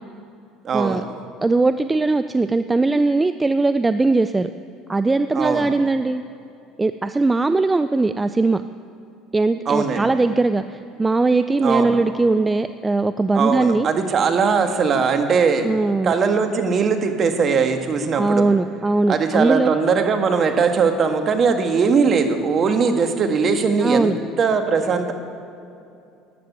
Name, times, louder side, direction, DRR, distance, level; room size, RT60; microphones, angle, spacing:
voice 1, 0.6-1.1 5.3-5.7 9.7-10.1 11.6-12.0 13.3-15.7 16.0-18.5 19.1-25.1, right 5 dB, 45° right, 6 dB, 1.6 m, -20 dB
voice 2, 1.4-4.5 4.9-6.2 6.8-8.6 9.3-13.9 15.6-16.1 18.2-19.7 23.8-24.2, right 3 dB, 15° right, 11 dB, 0.4 m, -20 dB
13.0 x 9.4 x 9.6 m, 2.6 s
supercardioid pair, 80°, 0 cm